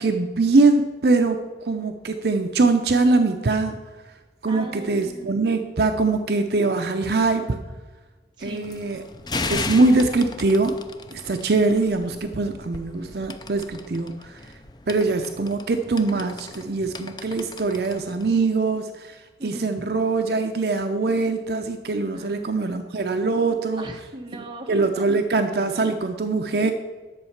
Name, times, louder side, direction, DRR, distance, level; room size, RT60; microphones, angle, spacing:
voice 1, 0.0-3.8 4.4-7.6 8.4-9.0 9.5-10.8 11.1-14.4 14.9-23.9 24.7-26.7, right 3 dB, 60° right, 6 dB, 0.6 m, -22 dB
voice 2, 4.5-5.3 8.4-8.7 19.4-19.7 22.1-22.8 23.8-25.1, right 1 dB, 25° right, 2 dB, 1.1 m, -39 dB
sound 1, 8.4-18.4, left 3 dB, 25° left, 0.5 m, -36 dB
11.0 x 7.2 x 5.8 m, 1.3 s
head